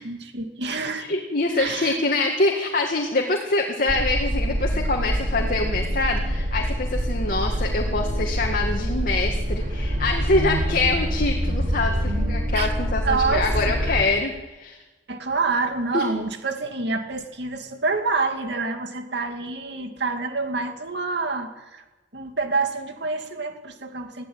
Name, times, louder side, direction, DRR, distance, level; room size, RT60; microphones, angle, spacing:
voice 1, 0.0-1.1 1.5-2.0 12.5-12.7 13.0-14.0 15.1-21.8 22.1-24.2, right 4 dB, 65° right, 6 dB, 2.4 m, -27 dB
voice 2, 1.0-14.8 15.9-16.1, left 2 dB, 50° left, 1 dB, 2.1 m, -25 dB
sound 1, 3.9-14.0, equal, 50° right, 3.2 m, -25 dB
21.0 x 14.5 x 8.7 m, 1.1 s
head